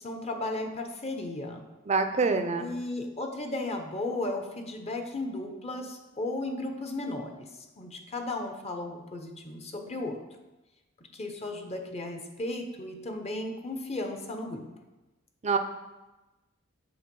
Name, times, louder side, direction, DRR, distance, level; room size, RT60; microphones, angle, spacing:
voice 1, 0.0-1.7 2.6-10.2 11.1-14.7, left 2 dB, 30° left, 4 dB, 0.7 m, -35 dB
voice 2, 1.9-2.7 15.4-15.6, right 4 dB, 35° right, 7 dB, 0.5 m, -25 dB
8.0 x 3.5 x 5.3 m, 1.1 s
head